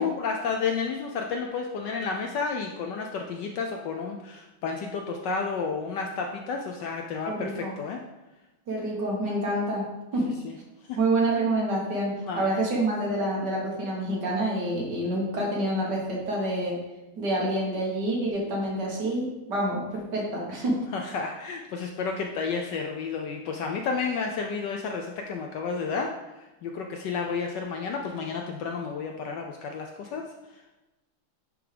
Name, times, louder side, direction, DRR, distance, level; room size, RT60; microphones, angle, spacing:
voice 1, 0.0-8.0 10.4-10.5 10.9-11.0 12.2-12.5 20.9-26.1 26.4-30.2, left 5 dB, 75° left, 2 dB, 1.0 m, -31 dB
voice 2, 7.3-7.8 8.7-9.8 10.1-10.3 11.0-16.8 17.2-20.8, right 1 dB, 55° right, -3 dB, 1.9 m, -27 dB
10.0 x 3.6 x 3.3 m, 1.0 s
omnidirectional pair, 2.3 m